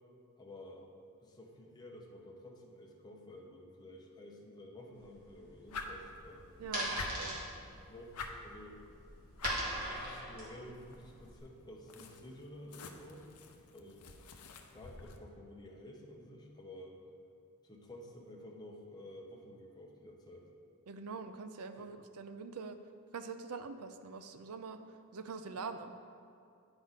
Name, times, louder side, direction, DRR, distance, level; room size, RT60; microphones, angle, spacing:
voice 1, 0.4-0.9 1.2-6.5 7.8-8.1 8.4-8.8 9.9-13.3 13.7-14.1 14.7-17.0 17.6-20.5 21.7-21.9, left 1 dB, 20° left, -2 dB, 0.7 m, -51 dB
sound 1, 4.9-11.4, right 1 dB, 40° right, 1.9 m, -41 dB
sound 2, 5.7-15.2, left 4 dB, 80° left, 0.6 m, -48 dB
voice 2, 6.6-7.4 20.9-22.8 23.1-24.8 25.1-26.0, right 4 dB, 80° right, 9 dB, 0.5 m, -44 dB
9.3 x 4.9 x 4.0 m, 2.5 s
head